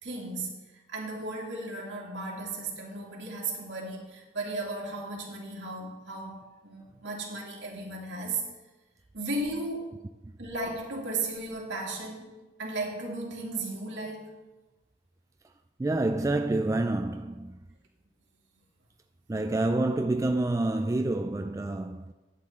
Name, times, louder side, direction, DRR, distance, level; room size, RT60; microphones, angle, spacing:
voice 1, 0.0-0.6 0.9-8.4 9.1-9.9 10.4-12.3 12.6-14.3, right 2 dB, 70° right, 2.5 m, -35 dB
voice 2, 15.8-17.6 19.3-22.1, right 2 dB, 15° right, 0.3 m, -28 dB
11.5 x 9.1 x 3.7 m
head